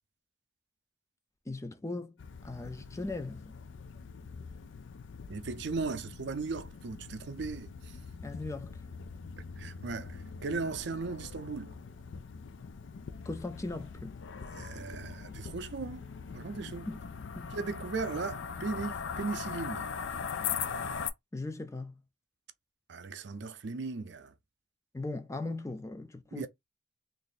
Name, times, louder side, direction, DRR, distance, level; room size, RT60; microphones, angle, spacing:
voice 1, 1.5-2.2 2.4-3.6 8.2-8.8 13.2-14.2 16.9-17.0 17.4-17.5 21.3-21.9 24.9-26.5, left 2 dB, 15° left, 0.4 m, -38 dB
sound 1, 2.2-21.1, left 6 dB, 75° left, 0.5 m, -41 dB
voice 2, 5.3-7.9 9.6-11.7 14.5-16.9 17.5-19.9 22.9-24.3 26.3-26.5, right 4 dB, 65° right, 0.5 m, -37 dB
3.0 x 2.6 x 4.0 m
head